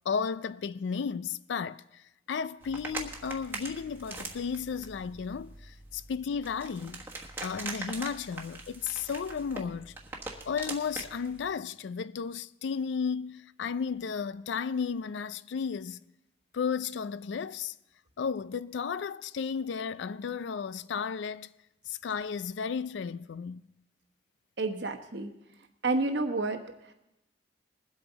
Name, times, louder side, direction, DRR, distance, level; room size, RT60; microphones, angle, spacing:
voice 1, 0.1-7.0 7.4-9.9 10.5-16.0 16.5-17.7 18.2-21.5 21.9-23.7, left 6 dB, 75° left, 0.4 m, -34 dB
sound 1, 2.6-11.5, right 3 dB, 15° right, 1.3 m, -42 dB
voice 2, 24.6-25.3 25.8-26.9, right 2 dB, 65° right, 1.0 m, -30 dB
21.0 x 8.1 x 4.0 m
head